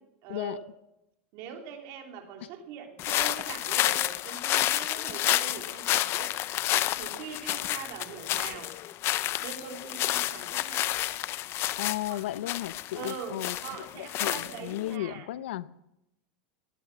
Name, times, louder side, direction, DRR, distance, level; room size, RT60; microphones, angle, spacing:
voice 1, 0.2-0.6 1.3-6.4 7.0-8.7 9.4-10.8 12.1-12.2 12.9-15.3, right 7 dB, 55° right, 3 dB, 3.3 m, -42 dB
sound 1, 3.0-14.9, left 15 dB, 45° left, 0.6 m, -30 dB
voice 2, 11.8-15.8, left 14 dB, 90° left, 17 dB, 0.7 m, -35 dB
18.0 x 12.5 x 6.0 m, 0.87 s
supercardioid pair, 130°, 6 cm